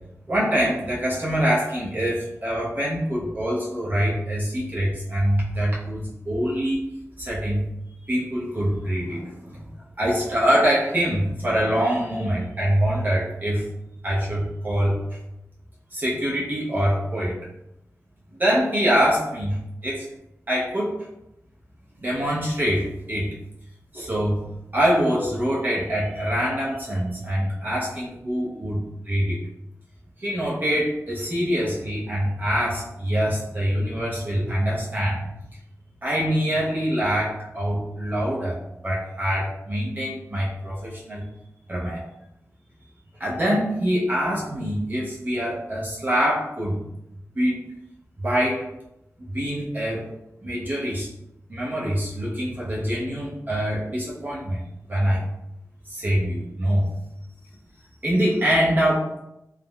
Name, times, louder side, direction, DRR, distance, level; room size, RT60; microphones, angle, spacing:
voice 1, 0.3-6.8 7.2-7.7 8.0-9.7 10.0-13.7 14.0-15.2 15.9-17.4 18.4-20.1 20.5-20.9 22.0-23.4 23.9-29.4 30.2-35.3 36.0-38.6 38.8-41.3 41.7-42.0 43.2-46.8 47.3-47.6 48.2-48.7 49.3-50.1 50.4-51.1 51.5-54.6 54.9-55.2 55.9-56.9 58.0-59.1, equal, 35° right, -6 dB, 0.6 m, -24 dB
3.4 x 2.0 x 2.3 m, 0.88 s
wide cardioid pair, 95°, 6 cm